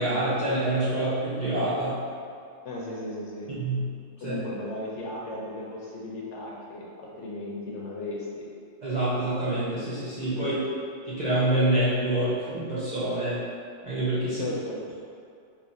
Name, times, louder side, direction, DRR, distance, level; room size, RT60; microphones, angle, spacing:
voice 1, 0.0-2.0 3.6-3.8 4.2-4.4 8.8-10.6 11.1-13.4 13.8-14.5, right 1 dB, 45° right, -11 dB, 0.6 m, -26 dB
voice 2, 2.6-3.5 4.2-8.5 10.4-10.5 14.4-14.8, left 2 dB, 70° left, -4 dB, 0.8 m, -36 dB
2.8 x 2.4 x 3.9 m, 2.4 s
omnidirectional pair, 1.4 m